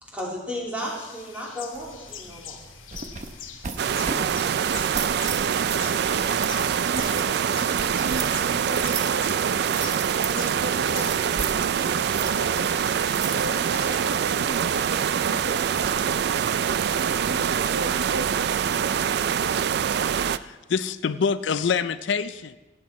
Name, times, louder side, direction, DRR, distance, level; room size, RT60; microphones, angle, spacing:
voice 1, 0.0-2.6, equal, 10° right, -4 dB, 2.8 m, -34 dB
sound 1, 0.8-14.0, left 8 dB, 90° left, 1.1 m, -44 dB
sound 2, 1.7-18.9, right 5 dB, 40° right, 0.7 m, -38 dB
sound 3, 3.8-20.4, right 8 dB, 55° right, 0.3 m, -24 dB
voice 2, 3.9-4.6 6.5-12.7 13.3-15.7 17.1-18.7, right 2 dB, 80° right, 7 dB, 0.9 m, -37 dB
voice 3, 20.4-22.6, left 6 dB, 65° left, 13 dB, 0.4 m, -26 dB
17.0 x 8.1 x 4.2 m, 1.1 s
head